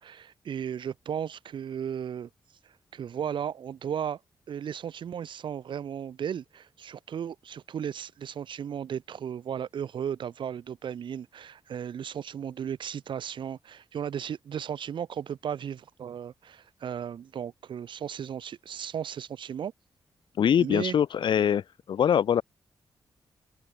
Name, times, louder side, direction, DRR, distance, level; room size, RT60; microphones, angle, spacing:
voice 1, 0.0-2.3 2.9-4.2 4.5-19.7 20.6-21.0, right 8 dB, 75° right, 2.3 m, -35 dB
voice 2, 20.4-21.6 21.9-22.4, left 8 dB, 70° left, 1.2 m, -23 dB
open air
wide cardioid pair, 140°, 8 cm